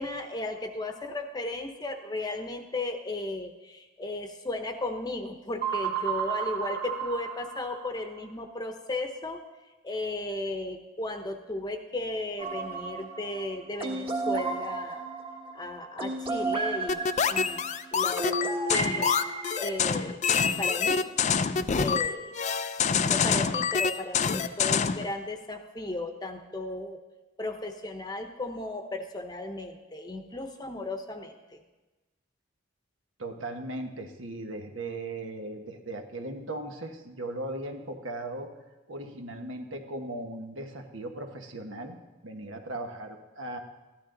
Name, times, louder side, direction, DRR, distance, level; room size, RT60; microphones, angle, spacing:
voice 1, 0.0-9.4 9.8-15.0 15.5-17.6 17.9-19.1 19.6-20.2 20.6-21.0 21.8-22.3 22.9-27.0 27.4-31.4, left 2 dB, 20° left, 5 dB, 0.8 m, -35 dB
sound 1, 5.6-8.2, right 8 dB, 55° right, 1.9 m, -32 dB
sound 2, 12.4-20.1, right 2 dB, 30° right, 1.4 m, -33 dB
sound 3, 16.9-25.1, left 6 dB, 35° left, 0.4 m, -26 dB
voice 2, 33.2-38.5 38.9-42.0 42.2-43.6, right 2 dB, 80° right, 4 dB, 1.3 m, -38 dB
14.5 x 11.5 x 3.9 m, 1.2 s
head